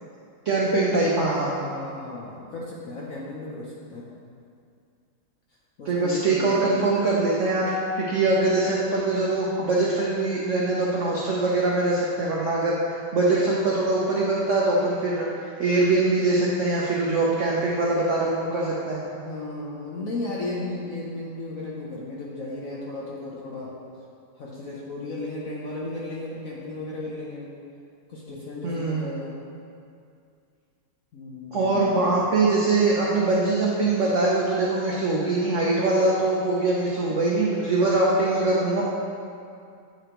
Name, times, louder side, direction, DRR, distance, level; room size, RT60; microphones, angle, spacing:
voice 1, 0.4-1.6 5.9-19.0 28.6-29.1 31.5-38.8, right 2 dB, 75° right, -5 dB, 0.7 m, -23 dB
voice 2, 1.6-4.1 5.8-6.8 19.1-23.8 24.3-27.5 28.1-29.3 31.1-32.1, left 2 dB, 60° left, -5 dB, 0.9 m, -35 dB
8.8 x 4.9 x 2.9 m, 2.4 s
omnidirectional pair, 2.2 m